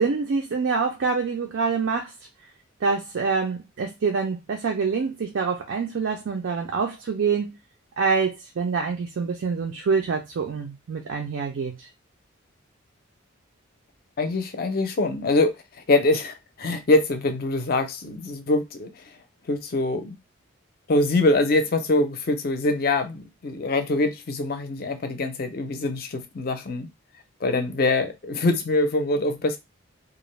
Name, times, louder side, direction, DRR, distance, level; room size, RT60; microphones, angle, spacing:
voice 1, 0.0-2.1 2.8-7.5 8.0-11.9, right 5 dB, 70° right, 0.4 m, -26 dB
voice 2, 14.2-19.0 19.5-20.2 20.9-26.9 27.4-29.6, left 2 dB, 45° left, 0.4 m, -24 dB
2.4 x 2.0 x 3.1 m
head